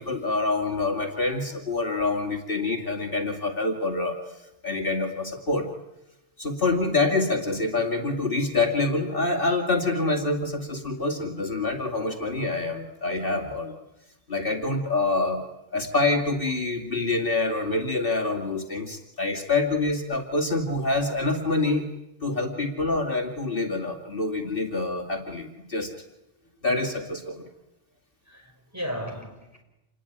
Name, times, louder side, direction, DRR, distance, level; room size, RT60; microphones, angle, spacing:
voice 1, 0.0-4.4 4.6-5.6 6.4-13.7 14.3-15.4 15.7-21.9 22.2-25.9 26.6-27.5, left 3 dB, 50° left, 2.6 m, -26 dB
voice 2, 28.2-29.6, equal, 15° right, 6.0 m, -36 dB
28.0 x 20.5 x 10.0 m
omnidirectional pair, 1.2 m